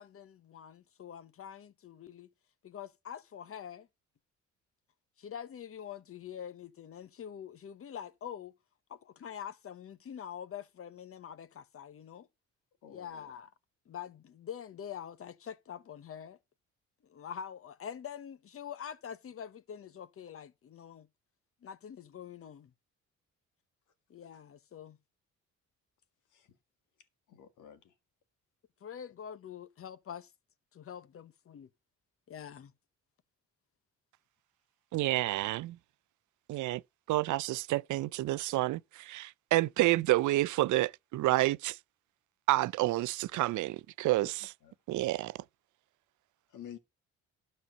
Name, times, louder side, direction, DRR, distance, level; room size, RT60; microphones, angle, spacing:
voice 1, 0.0-2.3 2.6-3.9 5.2-8.5 8.9-12.3 12.9-13.5 13.9-16.4 17.0-21.1 21.6-22.7 24.1-25.0 28.8-30.3 30.7-31.7 32.3-32.7, left 8 dB, 45° left, 0.9 m, -45 dB
voice 2, 12.8-13.3 26.3-26.5 27.3-27.8 44.2-44.3 44.6-44.7 46.5-46.8, left 9 dB, 85° left, 1.8 m, -50 dB
voice 3, 34.9-35.8 36.5-36.8 37.1-41.8 42.5-44.5 44.9-45.4, right 17 dB, 75° right, 0.5 m, -29 dB
12.5 x 4.3 x 6.3 m
cardioid pair, 90°, 30 cm